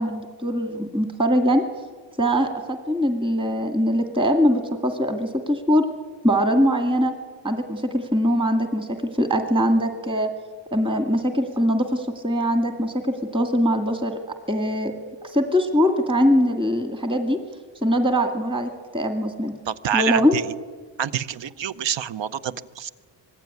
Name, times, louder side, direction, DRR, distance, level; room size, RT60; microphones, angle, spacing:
voice 1, 0.0-1.6 2.2-5.8 6.2-7.1 7.4-10.3 10.7-14.2 14.5-14.9 15.2-17.4 17.8-19.5 19.9-20.4, equal, 10° right, 5 dB, 2.0 m, -22 dB
voice 2, 19.7-20.4 21.0-22.9, right 9 dB, 65° right, 16 dB, 0.9 m, -27 dB
26.0 x 20.0 x 9.6 m, 1.4 s
wide cardioid pair, 165°, 47 cm